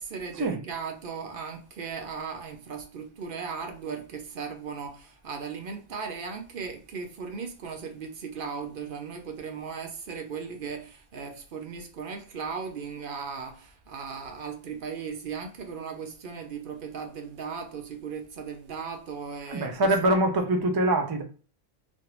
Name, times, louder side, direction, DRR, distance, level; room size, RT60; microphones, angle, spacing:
voice 1, 0.0-20.0, right 5 dB, 60° right, 0.7 m, -37 dB
voice 2, 19.4-21.2, right 1 dB, 35° right, 0.3 m, -24 dB
3.2 x 2.5 x 2.9 m
omnidirectional pair, 1.1 m